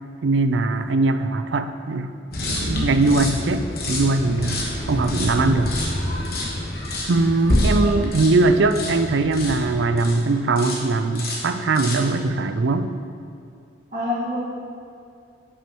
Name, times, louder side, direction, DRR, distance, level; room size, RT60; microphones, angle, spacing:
voice 1, 0.2-2.1 2.4-5.7 7.1-12.9, right 3 dB, 75° right, 10 dB, 0.4 m, -21 dB
sound 1, 2.3-10.2 10.6-10.9 11.1-12.1, left 1 dB, 50° left, 1.3 m, -26 dB
voice 2, 7.6-7.9 13.9-14.4, left 1 dB, 50° right, -13 dB, 1.7 m, -27 dB
10.5 x 6.1 x 3.0 m, 2.4 s
head